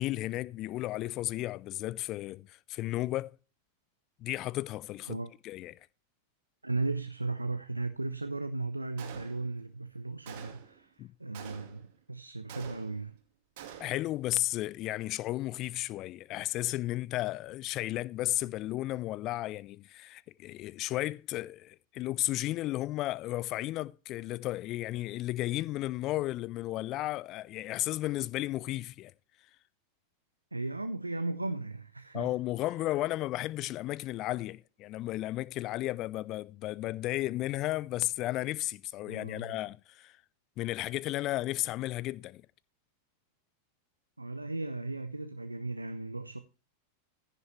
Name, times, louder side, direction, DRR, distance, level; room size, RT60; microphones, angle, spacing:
voice 1, 0.0-3.4 4.2-5.7 11.0-11.1 13.8-29.1 32.1-40.2 40.6-42.4, left 16 dB, 35° left, 0.5 m, -34 dB
voice 2, 6.6-10.9 11.2-13.1 30.5-32.3 39.1-39.6 44.2-46.4, right 3 dB, 85° right, 0.6 m, -36 dB
Gunshot gunfire, 9.0-9.7 10.3-10.8 11.3-12.0 12.5-13.2 13.6-14.1, right 9 dB, 50° right, 2.2 m, -47 dB
15.0 x 6.8 x 3.2 m
figure-of-eight pair, 90°, 0 cm